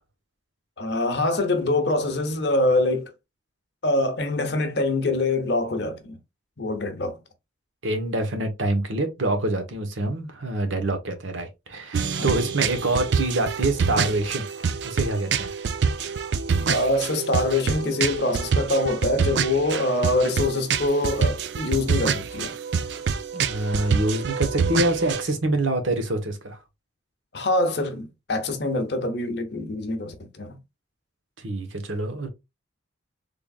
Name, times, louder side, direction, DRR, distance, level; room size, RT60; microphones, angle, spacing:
voice 1, 0.8-3.1 3.8-6.2 6.6-7.2 12.2-12.4 16.7-22.6 27.3-30.6, left 2 dB, 55° left, 0.8 m, -24 dB
voice 2, 7.8-14.5 14.8-15.6 23.3-26.6 31.4-32.3, right 2 dB, 80° right, 1.0 m, -26 dB
sound 1, 11.9-25.2, right 6 dB, 60° right, 0.4 m, -26 dB
3.7 x 3.4 x 2.3 m
head